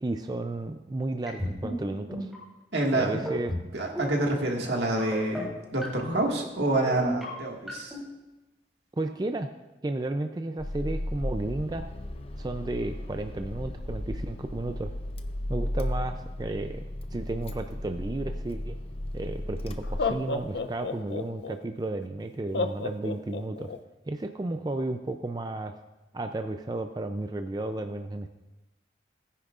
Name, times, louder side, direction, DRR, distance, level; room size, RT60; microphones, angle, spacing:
voice 1, 0.0-2.3 2.9-3.5 8.9-9.5 9.8-11.9 12.4-14.9 15.5-16.8 17.1-18.8 19.1-23.7 24.1-25.8 26.1-28.3, right 2 dB, 25° right, 7 dB, 0.4 m, -33 dB
sound 1, 1.3-1.7 2.1-2.4 3.1-3.6 3.9-4.2 5.0-5.4 5.8-6.2 6.8-7.2 7.7-8.0, equal, ahead, 3.3 m, -33 dB
voice 2, 2.7-3.2 3.7-7.9, right 2 dB, 80° right, 0 dB, 1.8 m, -27 dB
Car / Engine starting, 10.6-20.6, left 1 dB, 35° left, 0.6 m, -35 dB
Laughter, 19.1-19.2 19.8-21.6 22.5-23.8, left 4 dB, 80° left, 0.6 m, -31 dB
17.0 x 10.0 x 2.5 m, 1.0 s
head